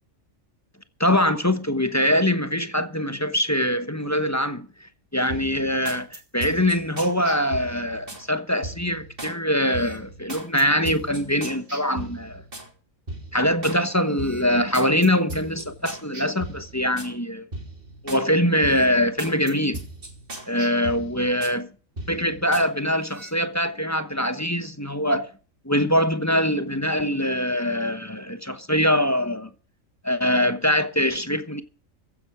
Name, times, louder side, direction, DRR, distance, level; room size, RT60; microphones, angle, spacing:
voice 1, 1.0-12.4 13.3-17.5 18.0-19.8 20.5-21.7 22.1-25.3 25.6-29.5 30.0-31.6, equal, 15° left, 1.0 m, -23 dB
sound 1, 5.3-8.2 8.6-9.4 9.7-12.7 13.1-13.8 14.2-17.1 17.5-18.3 18.6-21.6 22.0-22.7 23.0-23.3, right 1 dB, 40° right, 3.4 m, -38 dB
15.0 x 11.0 x 4.9 m
omnidirectional pair, 1.4 m